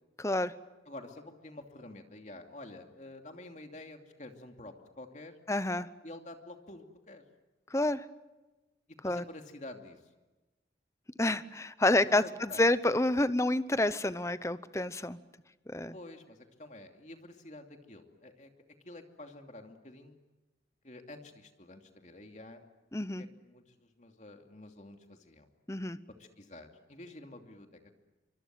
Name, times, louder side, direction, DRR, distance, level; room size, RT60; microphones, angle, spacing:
voice 1, 0.2-0.5 5.5-5.9 7.7-8.0 9.0-9.2 11.2-15.2 15.7-15.9 22.9-23.2 25.7-26.0, left 2 dB, 15° left, 14 dB, 0.8 m, -28 dB
voice 2, 0.9-5.4 6.0-7.2 9.0-10.1 12.0-12.7 15.9-18.5 18.8-20.2 20.8-22.6 23.2-25.5 26.2-28.0, left 2 dB, 40° left, 4 dB, 2.8 m, -49 dB
25.5 x 25.0 x 7.7 m, 1.1 s
head